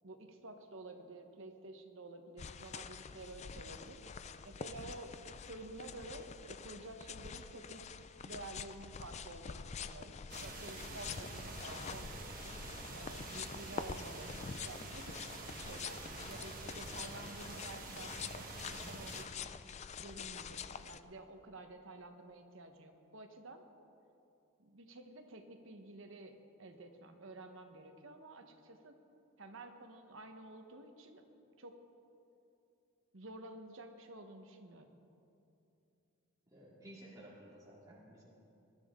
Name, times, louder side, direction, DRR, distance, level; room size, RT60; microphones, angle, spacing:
voice 1, 0.0-4.0 4.4-5.2 5.5-8.0 8.2-12.1 12.9-14.3 14.6-15.2 15.5-19.4 20.0-23.6 24.6-29.0 29.4-31.3 31.6-31.8 33.1-34.9, right 2 dB, 65° right, 6 dB, 1.1 m, -51 dB
sound 1, 2.4-21.0, left 6 dB, 30° left, 0.3 m, -46 dB
sound 2, 10.3-19.2, right 3 dB, 40° right, 1.4 m, -47 dB
voice 2, 36.5-38.2, right 1 dB, 15° right, -6 dB, 2.3 m, -55 dB
20.5 x 12.5 x 3.7 m, 2.7 s
head